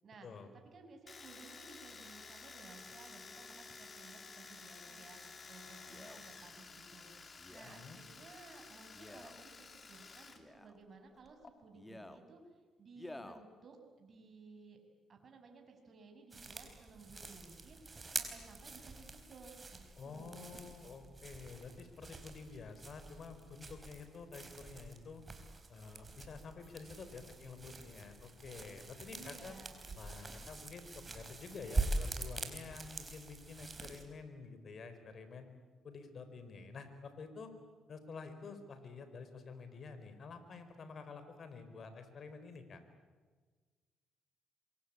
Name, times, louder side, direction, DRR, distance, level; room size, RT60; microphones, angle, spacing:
voice 1, 0.5-7.1 7.5-12.4 12.8-14.8 15.1-20.7 29.1-29.9, right 4 dB, 50° right, 4 dB, 6.3 m, -57 dB
Domestic sounds home sounds, 1.1-10.4 10.7-11.5, left 4 dB, 35° left, 3.2 m, -53 dB
Male speech man speaking, 5.9-6.2 7.4-7.8 8.9-9.4 10.3-10.8 11.7-12.2 12.9-13.4 14.1-14.2, left 1 dB, 10° left, 2.2 m, -51 dB
voice 2, 7.6-8.0 20.0-25.2 25.7-29.6 30.0-35.5 35.8-37.5 37.9-42.8, left 4 dB, 50° left, 9 dB, 4.5 m, -49 dB
sound 1, 16.3-34.0, right 3 dB, 30° right, 4.4 m, -44 dB
26.5 x 23.5 x 8.9 m, 1.4 s
cardioid pair, 90°, 0 cm